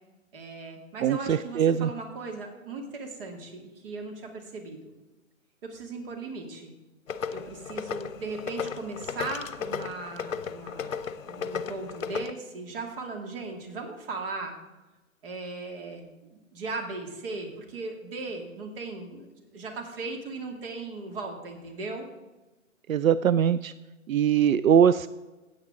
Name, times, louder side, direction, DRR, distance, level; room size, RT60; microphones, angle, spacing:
voice 1, 0.3-4.9 5.6-6.7 7.3-14.5 15.2-22.1, right 3 dB, 40° right, 2 dB, 2.4 m, -38 dB
voice 2, 1.0-1.9 22.9-23.7 24.1-25.1, right 8 dB, 75° right, 14 dB, 0.5 m, -22 dB
sound 1, 7.1-12.3, left 6 dB, 65° left, 0.8 m, -35 dB
16.0 x 8.9 x 3.7 m, 1.1 s
figure-of-eight pair, 135°, 41 cm